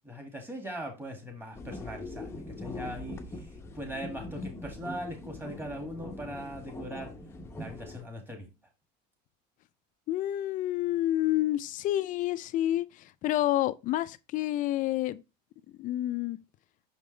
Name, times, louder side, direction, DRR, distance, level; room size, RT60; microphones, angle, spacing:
voice 1, 0.1-7.1 7.6-8.5, equal, 10° right, 2.2 m, -40 dB
sound 1, 1.5-8.0, left 2 dB, 10° left, 0.8 m, -42 dB
voice 2, 10.1-15.2 15.8-16.4, left 14 dB, 40° left, 0.5 m, -29 dB
6.4 x 5.3 x 3.3 m
cardioid pair, 140°, 21 cm